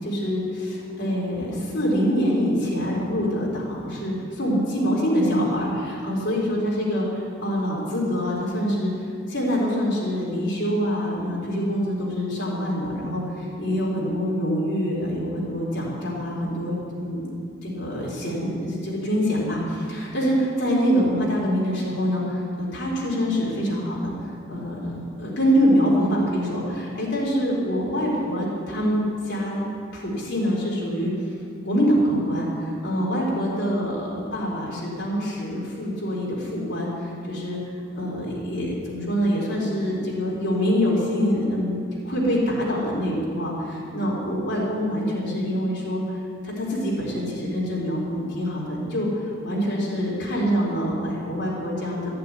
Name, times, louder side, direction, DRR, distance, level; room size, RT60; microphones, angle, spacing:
voice 1, 0.0-7.1 7.4-8.9 9.3-17.3 17.6-24.1 24.5-29.6 29.9-31.1 31.6-37.6 37.9-41.8 42.0-52.1, equal, 55° left, -5 dB, 4.3 m, -25 dB
15.0 x 6.9 x 10.0 m, 2.3 s
head